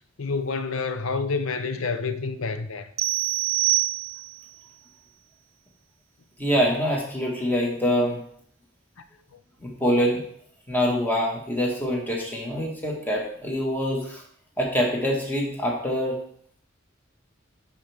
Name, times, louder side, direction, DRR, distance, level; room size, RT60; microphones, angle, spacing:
voice 1, 0.2-2.9, left 4 dB, 85° left, 0.7 m, -28 dB
sound 1, 3.0-4.5, right 19 dB, 70° right, 0.3 m, -25 dB
voice 2, 6.4-8.2 9.6-10.2 10.7-14.2 14.6-16.2, equal, 10° left, 1.6 m, -25 dB
10.5 x 4.7 x 3.5 m
head